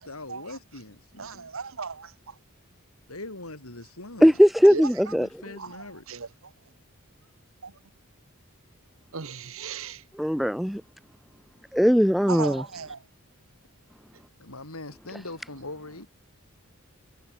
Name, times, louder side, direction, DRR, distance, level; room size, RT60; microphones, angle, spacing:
voice 1, 0.0-1.5 3.1-4.4 5.2-6.0 14.4-16.1, left 2 dB, 85° left, 6.4 m, -41 dB
voice 2, 1.2-2.4 4.6-5.2 5.6-6.5 7.6-7.7 9.1-10.0 12.3-13.1, right 5 dB, 65° right, 1.2 m, -37 dB
voice 3, 4.2-5.3 10.2-10.8 11.7-12.6, equal, ahead, 0.5 m, -19 dB
head